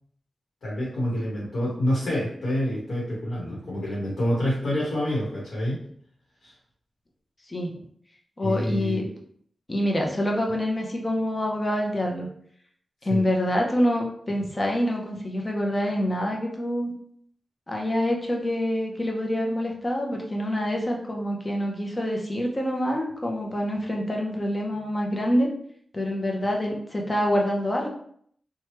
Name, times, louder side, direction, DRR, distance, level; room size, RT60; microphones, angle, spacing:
voice 1, 0.6-5.9 6.4-6.5 8.4-9.0 13.1-13.2, equal, 80° left, -7 dB, 1.1 m, -27 dB
voice 2, 7.5-7.8 8.4-9.0 9.7-12.3 13.0-16.9 17.7-25.5 25.9-27.9, equal, 35° left, 0 dB, 0.7 m, -26 dB
3.1 x 2.3 x 3.0 m, 0.66 s
cardioid pair, 50°, 0 cm